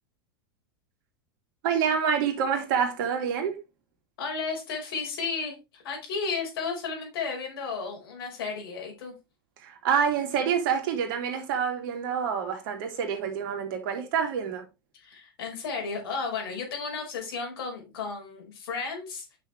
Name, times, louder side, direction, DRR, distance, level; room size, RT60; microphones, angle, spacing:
voice 1, 1.6-3.6 9.6-14.6, right 7 dB, 65° right, 2.6 m, -27 dB
voice 2, 4.2-9.1 14.9-19.2, left 5 dB, 75° left, 5.1 m, -33 dB
8.8 x 6.4 x 3.5 m
hypercardioid pair, 90°, 12 cm